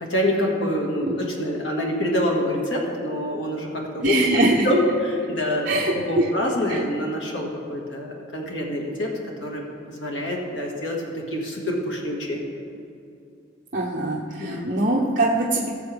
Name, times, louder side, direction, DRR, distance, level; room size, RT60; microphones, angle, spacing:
voice 1, 0.0-5.7 5.9-9.1 9.4-9.6 10.0-12.4 14.4-14.7, left 1 dB, 75° left, -1 dB, 1.8 m, -26 dB
voice 2, 4.0-4.7 5.7-6.3 6.7-6.8 13.7-15.7, right 2 dB, 45° right, -4 dB, 0.9 m, -22 dB
18.0 x 7.0 x 3.4 m, 2.6 s
head